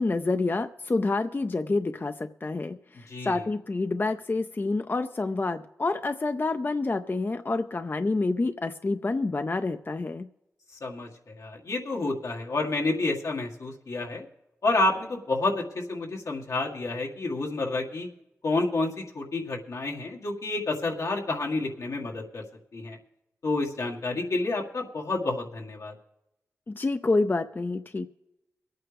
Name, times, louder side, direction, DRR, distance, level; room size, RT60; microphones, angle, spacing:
voice 1, 0.0-10.3 26.7-28.1, left 3 dB, 40° left, 9 dB, 0.5 m, -28 dB
voice 2, 3.1-3.4 10.8-11.1 11.4-14.3 14.6-18.1 18.4-22.4 22.7-23.0 23.4-25.9, left 2 dB, 85° left, -1 dB, 1.9 m, -29 dB
23.5 x 8.9 x 3.4 m, 0.93 s
cardioid pair, 60°, 5 cm